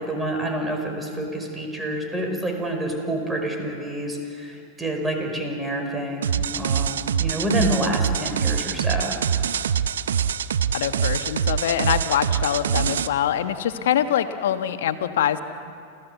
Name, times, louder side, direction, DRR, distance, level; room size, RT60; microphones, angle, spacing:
voice 1, 0.0-9.2, right 1 dB, 10° right, 3 dB, 5.4 m, -28 dB
sound 1, 6.2-13.1, right 8 dB, 80° right, 0.7 m, -24 dB
voice 2, 10.7-15.4, left 10 dB, 70° left, 9 dB, 1.4 m, -24 dB
28.5 x 15.0 x 8.3 m, 2.5 s
hypercardioid pair, 100°, 0 cm